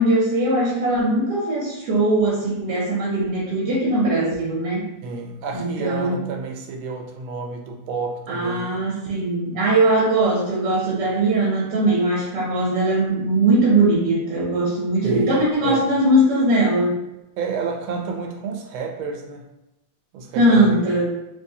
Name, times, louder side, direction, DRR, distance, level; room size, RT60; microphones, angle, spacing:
voice 1, 0.0-4.9 5.5-6.2 8.3-17.0 20.3-21.1, right 1 dB, 65° right, -5 dB, 1.2 m, -20 dB
voice 2, 5.0-9.0 15.0-15.8 17.4-19.5 20.1-21.1, right 4 dB, 85° right, 2 dB, 1.4 m, -30 dB
3.1 x 3.0 x 2.7 m, 0.93 s
omnidirectional pair, 2.2 m